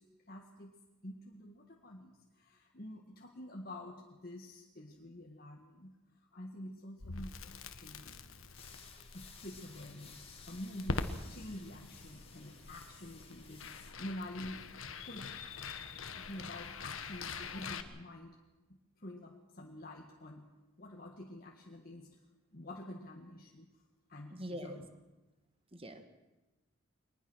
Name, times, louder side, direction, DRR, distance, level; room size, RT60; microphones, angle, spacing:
voice 1, 0.3-0.7 1.0-6.0 6.3-8.2 9.1-14.7 15.0-15.5 16.1-18.4 19.0-20.5 20.8-22.1 22.5-23.7 24.1-24.9, left 1 dB, 45° left, 0 dB, 1.8 m, -48 dB
Crackle, 7.0-17.8, left 3 dB, 70° left, 1.4 m, -44 dB
sound 1, 8.5-14.0, left 6 dB, 25° left, 2.7 m, -56 dB
voice 2, 24.3-24.8 25.7-26.0, equal, 25° right, 7 dB, 1.7 m, -43 dB
23.0 x 20.0 x 6.4 m, 1.1 s
head